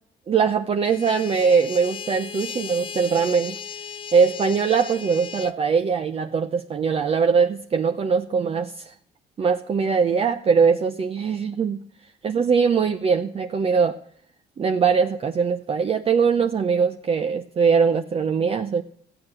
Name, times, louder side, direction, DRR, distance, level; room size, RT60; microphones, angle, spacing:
voice 1, 0.3-3.6 4.1-8.9 9.4-11.8 12.2-14.0 14.6-18.8, right 5 dB, 35° right, 0.7 m, -21 dB
sound 1, 0.8-5.5, left 7 dB, 30° left, 0.5 m, -36 dB
15.0 x 8.9 x 7.8 m
cardioid pair, 110°, 17 cm